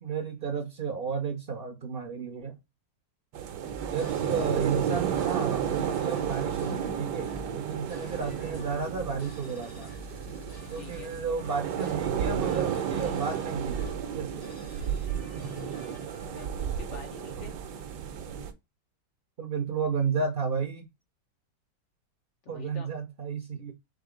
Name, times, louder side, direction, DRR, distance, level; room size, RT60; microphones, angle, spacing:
voice 1, 0.0-2.5 3.9-9.9 10.7-14.5 17.4-17.5 19.4-20.9 22.5-23.7, right 5 dB, 55° right, 0.6 m, -32 dB
sound 1, 3.3-18.5, right 8 dB, 80° right, 1.3 m, -32 dB
sound 2, 3.6-16.5, left 1 dB, 20° left, 0.5 m, -49 dB
voice 2, 10.8-11.1 16.3-17.5 22.4-22.9, left 6 dB, 65° left, 0.7 m, -46 dB
3.9 x 3.6 x 3.7 m
omnidirectional pair, 1.8 m